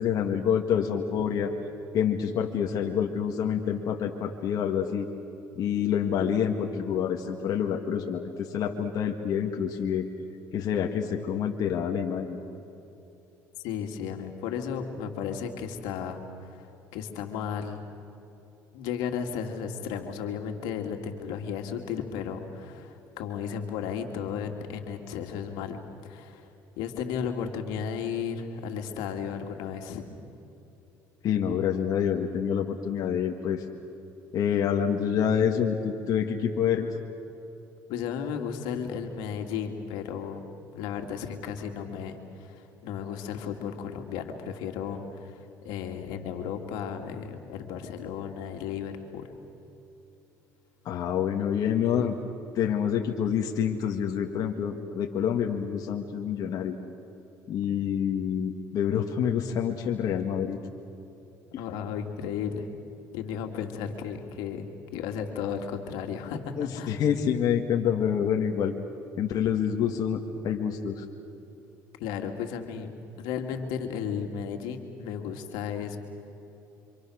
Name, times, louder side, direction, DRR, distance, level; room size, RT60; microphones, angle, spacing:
voice 1, 0.0-1.5 1.9-5.1 5.5-10.1 10.5-12.4 31.2-33.6 34.3-36.9 50.9-52.1 52.6-56.8 57.5-60.6 61.5-61.6 66.6-68.7 69.2-71.0, left 8 dB, 60° left, 2 dB, 1.9 m, -27 dB
voice 2, 13.6-17.8 18.7-26.5 26.8-30.0 37.9-40.5 40.7-49.2 61.6-62.7 63.1-67.0 72.0-72.9 73.2-76.0, left 7 dB, 85° left, 4 dB, 2.6 m, -34 dB
27.5 x 26.0 x 6.5 m, 2.9 s
cardioid pair, 100°, 7 cm